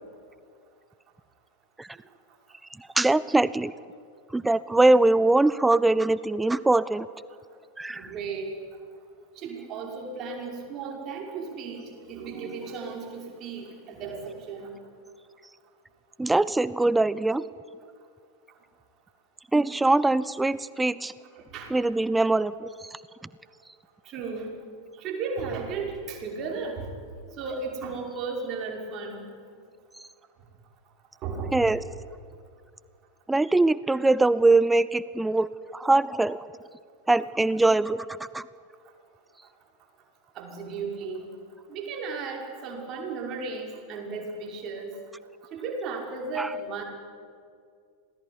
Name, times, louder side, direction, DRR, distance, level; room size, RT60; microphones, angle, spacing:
voice 1, 2.8-3.7 4.3-7.1 7.8-8.1 16.2-17.4 19.5-21.1 21.7-23.0 31.5-31.8 33.3-36.5 37.1-38.1 38.3-38.5 46.4-46.5, right 2 dB, 5° right, 19 dB, 0.6 m, -22 dB
voice 2, 7.9-8.5 9.4-14.8 21.5-21.7 24.0-24.5 25.0-26.9 27.4-29.2 31.2-31.7 40.3-41.3 41.7-45.0 45.5-46.8, right 4 dB, 35° right, 1 dB, 5.8 m, -35 dB
26.5 x 19.5 x 9.8 m, 2.2 s
figure-of-eight pair, 90°, 0 cm